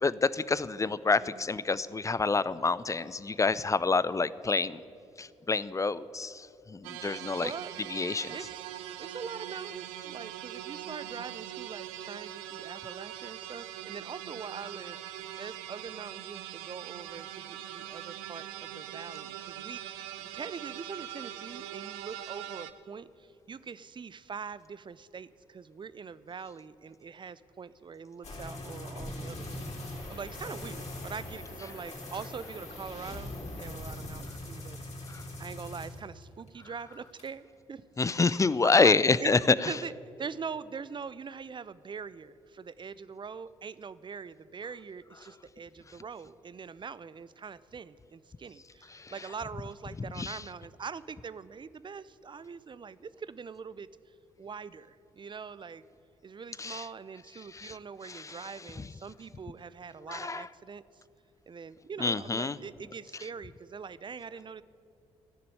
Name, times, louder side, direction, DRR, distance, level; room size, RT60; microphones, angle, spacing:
voice 1, 0.0-4.8 5.2-7.5 7.9-8.4 35.1-35.2 38.0-39.8 48.9-49.1 50.0-50.4 56.6-56.9 57.5-57.8 58.0-58.9 60.1-60.5 62.0-62.6, left 4 dB, 20° left, 18 dB, 0.5 m, -28 dB
sound 1, 6.8-22.7, right 12 dB, 75° right, 0.5 m, -42 dB
voice 2, 7.1-7.7 8.3-8.6 9.0-34.8 35.4-37.8 38.1-38.9 39.2-39.3 39.6-39.9 40.2-53.9 54.4-55.8 56.2-60.8 61.5-64.6, right 6 dB, 30° right, 17 dB, 0.5 m, -43 dB
sound 2, 28.2-36.5 36.8-37.3, left 1 dB, 45° left, 3.4 m, -41 dB
14.5 x 6.8 x 9.8 m, 2.6 s
hypercardioid pair, 40°, 15 cm